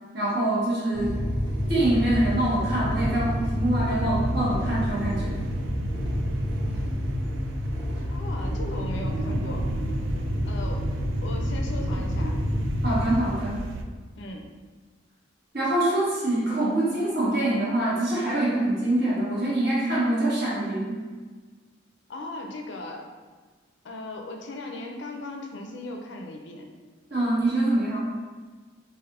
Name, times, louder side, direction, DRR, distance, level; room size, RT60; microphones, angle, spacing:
voice 1, 0.1-1.2 1.7-5.4 12.8-13.6 15.5-21.0 27.1-28.1, right 1 dB, 55° right, -8 dB, 1.4 m, -25 dB
sound 1, 0.9-13.2, left 1 dB, 30° right, 1.4 m, -28 dB
sound 2, 1.6-13.8, right 2 dB, 75° right, 0.3 m, -35 dB
voice 2, 8.1-9.7 10.5-10.9 11.2-12.4 14.2-14.5 22.1-23.1 23.8-26.7, left 2 dB, 65° left, 3 dB, 0.5 m, -37 dB
3.3 x 2.6 x 3.7 m, 1.4 s
head